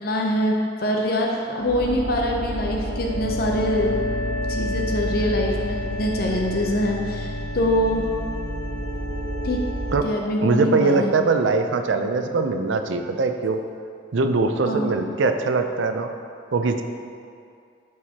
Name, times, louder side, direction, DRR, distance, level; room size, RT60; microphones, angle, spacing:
voice 1, 0.0-3.9 4.5-8.1 9.4-9.6 10.0-11.1 14.6-14.9, equal, 50° left, 0 dB, 0.6 m, -24 dB
sound 1, 1.6-10.0, equal, 65° left, 1.0 m, -28 dB
voice 2, 10.4-13.6 14.1-16.1 16.5-16.8, right 3 dB, 75° right, 7 dB, 0.5 m, -22 dB
11.5 x 4.7 x 2.9 m, 2.4 s
head